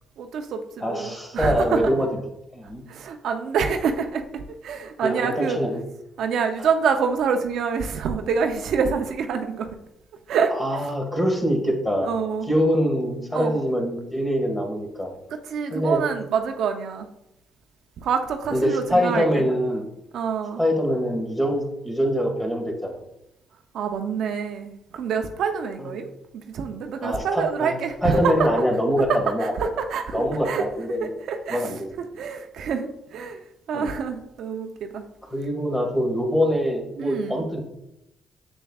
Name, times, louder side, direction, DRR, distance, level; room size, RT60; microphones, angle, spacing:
voice 1, 0.2-1.9 2.9-5.6 6.2-9.8 10.3-10.9 12.0-12.5 13.3-13.6 15.3-17.1 18.0-19.5 20.1-20.6 23.7-28.5 29.4-30.7 31.0-33.4 33.7-35.1 37.0-37.4, right 6 dB, 75° right, 5 dB, 0.6 m, -27 dB
voice 2, 0.8-2.1 2.5-2.8 5.0-5.8 10.6-12.1 12.5-15.1 15.7-16.0 18.5-19.8 20.6-23.0 27.0-29.5 30.1-31.1 31.5-31.8 33.7-33.9 35.3-37.6, equal, 10° left, 1 dB, 1.8 m, -24 dB
7.1 x 7.1 x 2.4 m, 0.86 s
cardioid pair, 90°, 0 cm